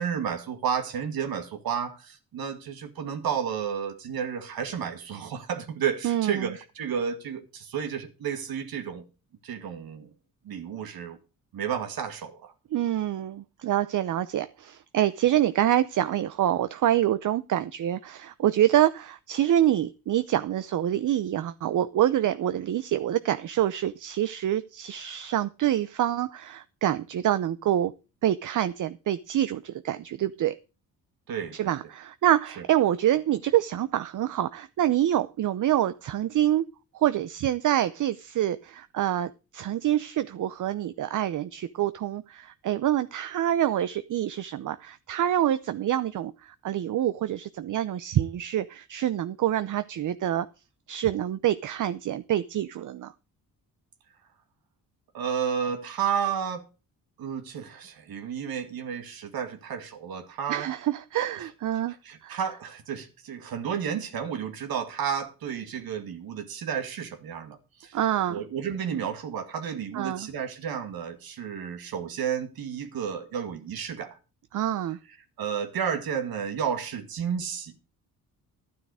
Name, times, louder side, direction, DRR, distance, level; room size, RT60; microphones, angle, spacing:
voice 1, 0.0-9.0 9.4-10.1 10.4-11.2 11.5-12.5 31.3-31.7 55.1-56.6 57.2-60.7 61.4-61.5 61.9-68.0 68.3-74.2 75.4-77.7, right 7 dB, 75° right, 2.2 m, -32 dB
voice 2, 6.0-6.5 12.7-27.9 28.2-30.6 31.5-36.6 36.9-50.5 50.9-53.1 60.5-61.9 62.2-62.4 67.9-68.4 69.9-70.3 74.5-75.0, right 12 dB, 55° right, 0.7 m, -26 dB
12.0 x 9.6 x 4.9 m
cardioid pair, 120°, 36 cm